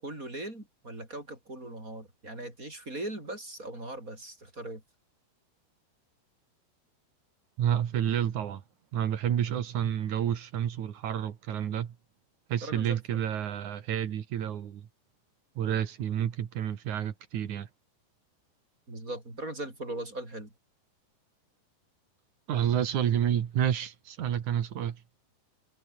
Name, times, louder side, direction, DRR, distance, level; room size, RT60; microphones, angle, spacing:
voice 1, 0.0-4.8 12.6-13.2 18.9-20.5, right 1 dB, 20° right, 7.5 m, -39 dB
voice 2, 7.6-8.6 8.9-11.9 12.5-14.9 15.6-17.7 22.5-25.0, right 10 dB, 55° right, 2.7 m, -29 dB
omnidirectional pair, 4.9 m